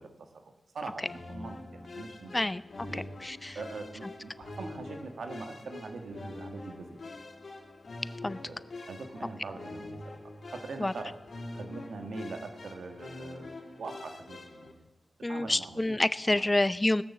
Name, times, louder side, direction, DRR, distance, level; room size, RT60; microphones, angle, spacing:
voice 1, 0.0-2.5 2.8-3.1 3.5-7.0 8.2-11.2 11.5-14.8 15.2-16.0 16.2-16.5, right 3 dB, 85° right, 6 dB, 1.6 m, -43 dB
sound 1, 1.0-14.7, left 2 dB, 70° left, 2.6 m, -44 dB
voice 2, 2.9-3.6 8.2-8.4 10.8-10.9 15.2-17.0, left 1 dB, 25° left, 17 dB, 0.6 m, -28 dB
19.0 x 6.7 x 7.1 m, 0.95 s
cardioid pair, 45°, 0 cm